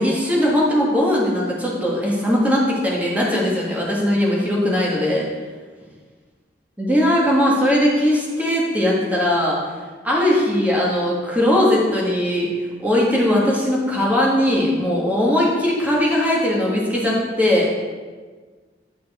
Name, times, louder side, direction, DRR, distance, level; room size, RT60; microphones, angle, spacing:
voice 1, 0.0-5.3 6.8-9.6 10.0-17.7, left 1 dB, 10° right, -4 dB, 1.8 m, -19 dB
9.8 x 5.9 x 4.3 m, 1.4 s
head